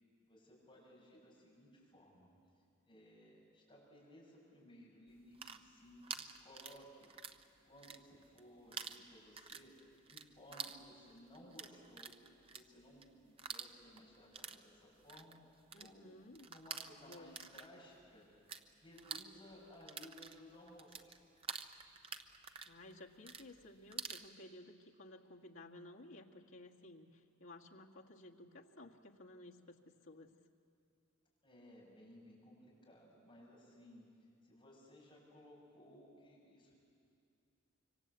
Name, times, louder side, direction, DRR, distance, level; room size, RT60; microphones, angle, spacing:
voice 1, 0.3-2.3 2.8-7.1 7.6-9.7 10.0-15.4 15.7-16.1 16.5-18.3 18.8-21.2 31.4-34.0 34.4-36.7, equal, 25° left, -4 dB, 7.2 m, -59 dB
sound 1, 5.2-7.4 7.7-8.4 8.7-18.6 18.9-24.3, right 6 dB, 30° right, 0.8 m, -48 dB
voice 2, 15.7-16.5 17.1-17.4 22.6-30.3, left 1 dB, 75° left, -1 dB, 1.9 m, -56 dB
25.5 x 24.5 x 8.3 m, 2.5 s
head